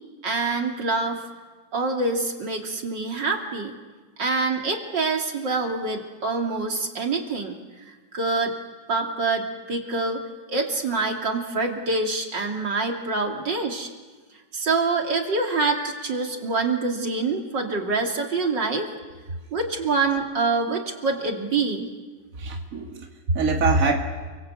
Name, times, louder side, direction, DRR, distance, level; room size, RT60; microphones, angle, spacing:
voice 1, 0.2-1.2 1.7-3.7 4.2-7.6 8.1-8.5 8.9-10.2 10.5-13.9 14.5-18.9 19.5-21.9, right 3 dB, 75° right, 1 dB, 3.5 m, -25 dB
voice 2, 22.4-24.0, right 3 dB, 50° right, 1 dB, 2.6 m, -23 dB
29.5 x 24.0 x 8.3 m, 1.4 s
omnidirectional pair, 1.9 m